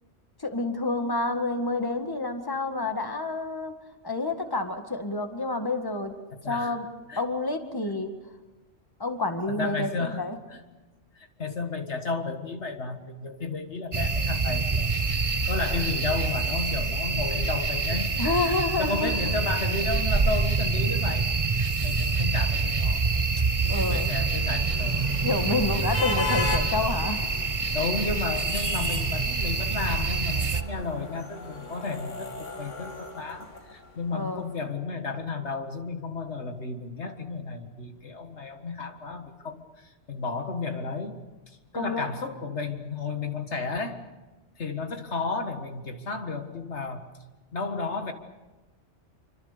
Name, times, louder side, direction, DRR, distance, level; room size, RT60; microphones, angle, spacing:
voice 1, 0.4-3.7 4.0-6.1 6.4-6.9 7.2-8.1 9.0-10.4 18.2-19.1 23.7-24.1 25.2-27.2 34.1-34.4 41.7-42.1, left 2 dB, 20° left, 6 dB, 1.9 m, -28 dB
voice 2, 6.3-6.8 7.1-7.2 9.5-10.2 10.5-10.6 11.1-18.2 18.8-23.0 23.4-25.1 27.7-44.1 44.6-47.1 47.5-48.1, left 3 dB, 65° left, 6 dB, 2.0 m, -33 dB
sound 1, 13.9-30.6, right 4 dB, 30° right, 1.1 m, -26 dB
sound 2, 23.8-34.1, left 4 dB, 85° left, 2.9 m, -37 dB
27.0 x 25.0 x 6.8 m, 1.2 s
omnidirectional pair, 1.2 m